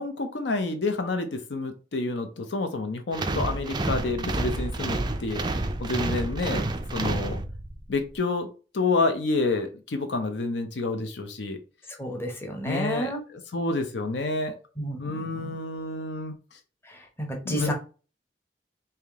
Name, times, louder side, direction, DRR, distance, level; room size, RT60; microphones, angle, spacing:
voice 1, 0.0-5.4 5.8-7.4 7.9-11.6 12.7-14.5 15.0-16.3 17.4-17.7, left 3 dB, 65° left, 7 dB, 0.6 m, -29 dB
sound 1, 3.1-7.9, right 2 dB, 25° right, 0.4 m, -29 dB
voice 2, 12.0-13.2 14.8-15.5 16.9-17.7, equal, 15° left, 2 dB, 0.8 m, -32 dB
3.5 x 2.8 x 3.5 m, 0.35 s
head